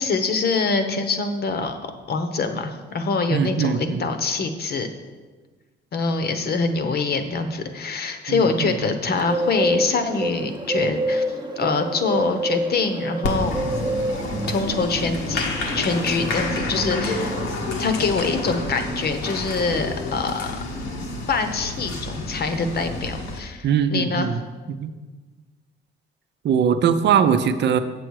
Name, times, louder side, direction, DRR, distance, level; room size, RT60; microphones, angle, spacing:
voice 1, 0.0-1.8 2.1-4.9 5.9-11.2 11.6-13.6 14.5-15.5 15.7-17.3 17.8-20.5 21.3-24.3, left 4 dB, 50° left, 7 dB, 0.9 m, -24 dB
voice 2, 3.3-4.0 8.3-8.7 23.6-24.4 24.7-24.9 26.4-27.8, right 7 dB, 60° right, 10 dB, 0.6 m, -21 dB
Bird, 9.1-17.4, right 1 dB, 25° right, 0.8 m, -28 dB
Applause, 13.2-23.4, left 2 dB, 90° left, 1.2 m, -29 dB
7.5 x 7.0 x 4.7 m, 1.3 s
cardioid pair, 90°, 20 cm